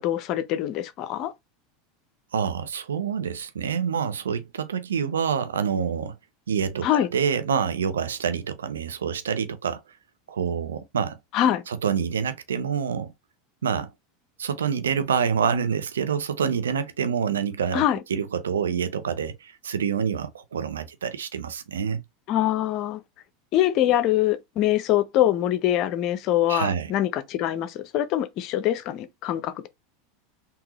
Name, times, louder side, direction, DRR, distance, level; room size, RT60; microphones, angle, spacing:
voice 1, 0.0-1.3 6.8-7.1 11.3-11.6 17.7-18.0 22.3-23.0 23.5-29.7, left 12 dB, 50° left, 0.6 m, -24 dB
voice 2, 2.3-6.1 6.5-9.8 10.3-11.2 11.7-13.1 13.6-13.9 14.4-17.8 18.1-22.0 26.5-26.9, right 7 dB, 80° right, 0.5 m, -27 dB
3.7 x 2.9 x 2.8 m
hypercardioid pair, 85°, 0 cm